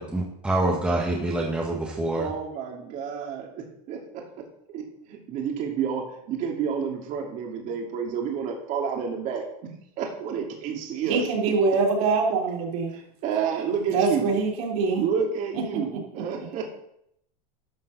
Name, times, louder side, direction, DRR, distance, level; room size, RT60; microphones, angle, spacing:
voice 1, 0.1-2.3, right 2 dB, 5° right, -2 dB, 1.7 m, -26 dB
voice 2, 2.1-4.2 4.7-9.4 10.0-11.2 13.2-14.3 15.0-16.6, right 7 dB, 40° right, 1 dB, 2.7 m, -30 dB
voice 3, 11.0-12.9 13.9-15.0 15.5-15.6 15.9-16.2, right 4 dB, 65° right, -1 dB, 3.6 m, -24 dB
12.0 x 5.4 x 6.9 m, 0.74 s
supercardioid pair, 150°, 20 cm